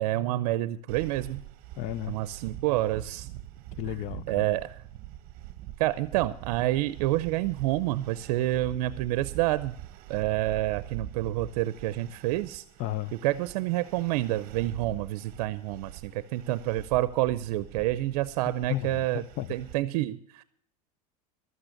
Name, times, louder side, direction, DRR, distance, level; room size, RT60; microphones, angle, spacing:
voice 1, 0.0-1.4 2.1-3.3 4.3-4.8 5.8-9.8 10.1-12.6 13.2-19.2 19.5-20.4, right 15 dB, 70° right, 0.6 m, -28 dB
sound 1, 0.9-19.7, right 15 dB, 45° right, 1.0 m, -44 dB
voice 2, 1.8-2.2 3.7-4.5 12.8-13.1 18.7-19.1 19.4-19.5, left 14 dB, 40° left, 0.5 m, -33 dB
12.5 x 9.0 x 6.5 m
supercardioid pair, 150°, 20 cm